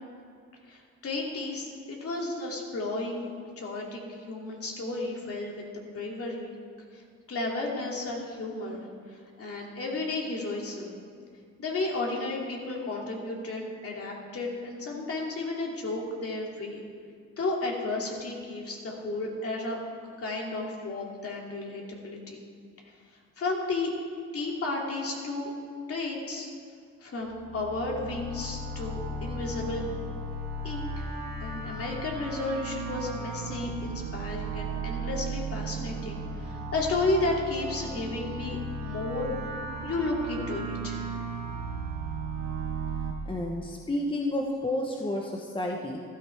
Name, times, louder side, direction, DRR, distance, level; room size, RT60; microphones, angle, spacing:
voice 1, 0.7-3.3 3.6-6.5 6.9-7.0 7.3-10.9 11.6-16.8 17.4-19.8 20.2-22.4 23.4-23.9 24.3-25.5 25.9-26.5 27.0-29.8 30.6-31.0 31.4-39.3 39.8-41.2, left 2 dB, 50° left, -1 dB, 2.7 m, -33 dB
sound 1, 27.2-43.1, right 3 dB, 65° right, 1.6 m, -35 dB
voice 2, 43.3-46.0, left 1 dB, 15° left, 0 dB, 1.1 m, -30 dB
15.0 x 13.0 x 3.6 m, 2.2 s
cardioid pair, 90°, 30 cm